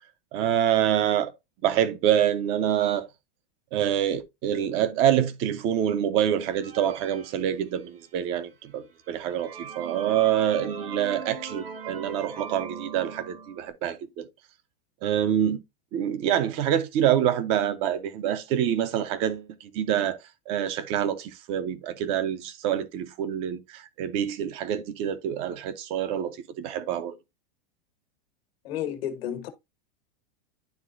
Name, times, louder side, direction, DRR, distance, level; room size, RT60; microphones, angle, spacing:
voice 1, 0.3-1.3 1.6-3.1 3.7-14.3 15.0-15.6 15.9-20.2 20.5-27.1, right 10 dB, 20° right, 0.4 m, -26 dB
sound 1, 6.5-8.2 8.7-8.8 9.2-13.7, right 5 dB, 75° right, 2.3 m, -40 dB
voice 2, 28.6-29.5, left 10 dB, 85° left, 1.5 m, -31 dB
11.0 x 3.7 x 2.4 m
supercardioid pair, 170°, 30 cm